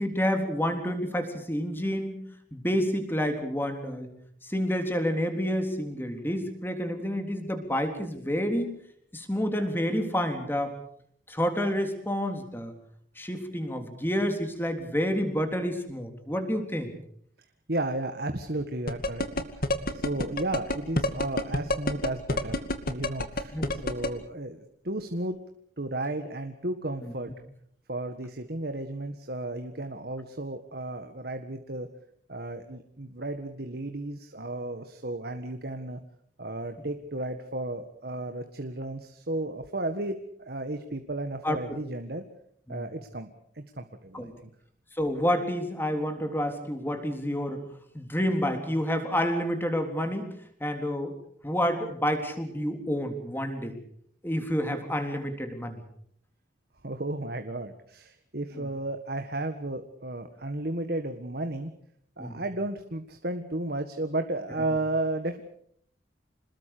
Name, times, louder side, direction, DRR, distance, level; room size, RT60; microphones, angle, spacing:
voice 1, 0.0-2.3 2.5-4.1 4.4-8.7 9.1-10.7 11.3-12.7 13.2-16.9 23.5-23.8 27.0-27.1 41.4-41.6 42.7-42.9 44.1-44.3 44.9-47.7 47.9-50.3 50.6-51.2 51.4-53.8 54.2-55.8 58.5-58.6 62.2-62.4, equal, 10° left, 5 dB, 3.7 m, -29 dB
voice 2, 17.7-19.6 19.9-25.4 25.8-27.3 27.9-31.9 32.3-36.0 36.4-42.2 42.7-43.3 43.5-44.5 56.8-61.7 62.2-65.4, right 2 dB, 55° right, 7 dB, 1.7 m, -33 dB
sound 1, 18.9-24.1, left 1 dB, 50° left, 2.4 m, -26 dB
27.5 x 20.5 x 6.8 m, 0.66 s
head